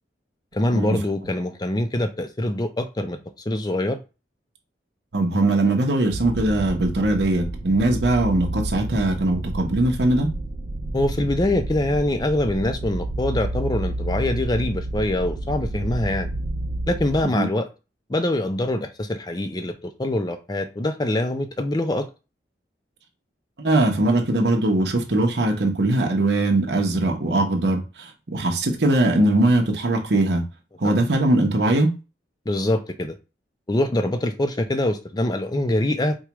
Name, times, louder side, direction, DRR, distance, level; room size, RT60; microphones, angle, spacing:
voice 1, 0.5-3.2 3.5-4.0 10.9-16.3 16.9-17.7 18.1-22.0 30.8-31.0 32.5-33.1 33.7-36.2, left 1 dB, 25° left, 7 dB, 0.5 m, -24 dB
voice 2, 5.1-10.3 17.3-17.4 23.6-30.4 30.8-31.9, right 2 dB, 70° right, 1 dB, 0.9 m, -21 dB
sound 1, 6.1-17.2, right 1 dB, 40° right, 0.4 m, -30 dB
4.7 x 2.3 x 2.9 m, 0.29 s
head